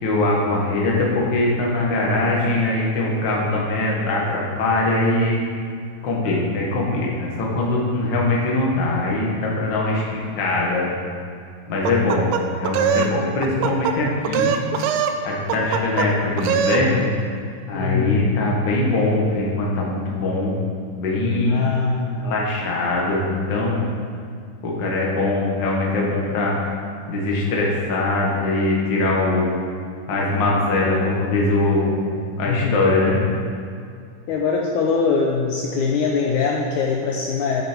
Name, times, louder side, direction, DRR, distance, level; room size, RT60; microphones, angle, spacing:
voice 1, 0.0-5.4 6.0-10.9 11.7-14.5 15.2-17.1 17.7-20.6 21.0-21.6 22.2-23.9 24.6-26.6 27.1-29.5 30.1-32.0 32.3-33.2, left 2 dB, 45° left, -3 dB, 1.9 m, -22 dB
sound 1, 11.8-13.1 13.4-13.9 14.2-15.2 15.5-16.1 16.4-16.8, right 8 dB, 85° right, 2.2 m, -22 dB
voice 2, 17.7-18.3 21.5-22.2 32.5-32.8 34.3-37.6, left 5 dB, 75° left, 0 dB, 2.0 m, -22 dB
10.0 x 8.6 x 4.5 m, 2.3 s
omnidirectional pair, 3.8 m